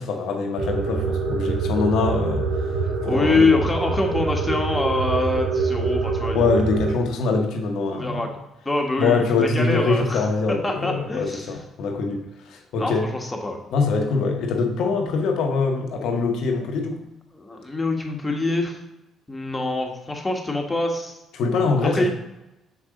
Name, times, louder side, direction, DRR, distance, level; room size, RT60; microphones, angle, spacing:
voice 1, 0.0-2.5 3.0-3.5 6.3-8.3 9.0-13.1 13.7-17.0 21.3-22.1, left 4 dB, 70° left, 3 dB, 0.9 m, -23 dB
sound 1, 0.6-6.9, right 4 dB, 80° right, 1.7 m, -25 dB
voice 2, 3.0-6.5 7.9-8.3 8.6-11.5 12.8-13.6 17.3-18.8 19.3-21.2 21.8-22.1, left 2 dB, 20° left, 2 dB, 1.4 m, -25 dB
6.0 x 4.8 x 3.8 m, 0.95 s
hypercardioid pair, 55°, 0 cm